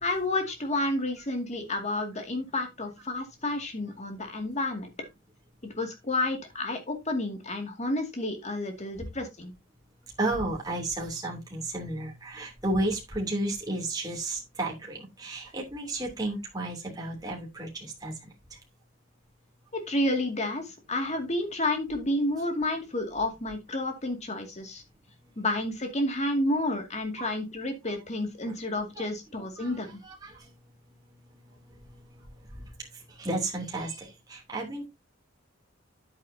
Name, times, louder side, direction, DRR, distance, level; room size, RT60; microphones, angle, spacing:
voice 1, 0.0-4.9 5.8-9.5 19.7-24.8 25.4-30.0, left 1 dB, 35° left, 5 dB, 2.3 m, -30 dB
voice 2, 10.0-18.6 25.2-25.3 27.2-27.3 28.5-28.6 29.0-29.1 29.4-30.7 31.0-34.9, right 2 dB, 20° right, -2 dB, 2.9 m, -34 dB
9.8 x 8.8 x 2.8 m, 0.22 s
head